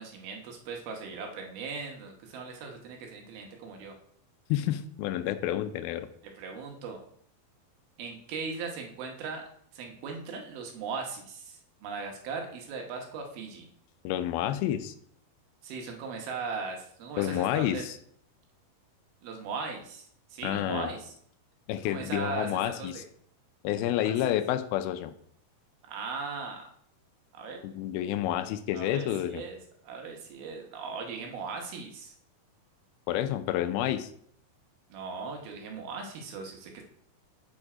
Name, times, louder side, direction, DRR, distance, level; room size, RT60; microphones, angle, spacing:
voice 1, 0.0-4.0 6.3-7.0 8.0-9.4 9.7-13.7 15.6-17.8 19.2-20.0 20.3-21.1 21.8-23.0 23.8-24.1 25.9-26.7 27.3-27.6 28.7-29.6 29.8-32.1 34.9-36.8, right 4 dB, 75° right, 2 dB, 3.0 m, -38 dB
voice 2, 4.5-6.1 14.0-14.9 17.2-18.0 20.4-20.9 21.7-22.9 23.6-25.1 27.6-29.4 33.1-34.1, left 12 dB, 80° left, 10 dB, 2.4 m, -29 dB
7.8 x 4.3 x 4.8 m, 0.62 s
omnidirectional pair, 4.4 m